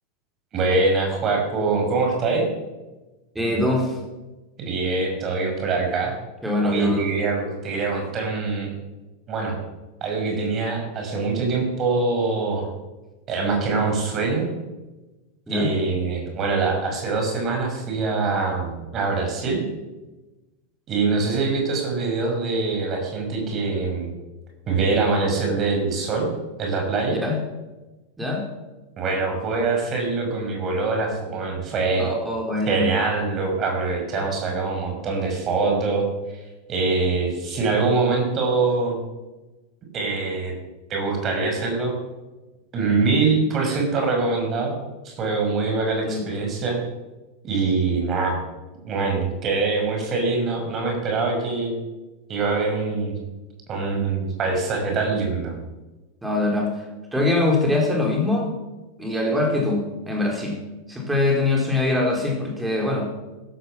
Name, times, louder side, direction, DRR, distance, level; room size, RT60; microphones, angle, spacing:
voice 1, 0.5-2.5 4.6-6.1 6.6-8.7 9.3-9.6 10.0-12.7 13.3-14.5 15.5-19.6 20.9-24.1 24.7-26.3 26.6-27.2 29.0-32.1 32.7-36.1 36.7-39.0 39.9-40.5 40.9-42.0 42.7-44.8 45.0-46.8 47.4-48.4 48.8-51.7 52.3-53.2 53.7-55.5, right 3 dB, 30° right, 2 dB, 6.1 m, -24 dB
voice 2, 3.3-4.0 6.4-7.1 15.5-15.7 27.1-27.4 28.2-28.5 32.0-32.9 46.0-46.2 56.2-56.8 57.1-58.5 59.0-60.6 60.9-63.1, left 2 dB, 5° right, 0 dB, 4.6 m, -23 dB
16.0 x 13.5 x 6.1 m, 1.1 s
figure-of-eight pair, 90°, 0 cm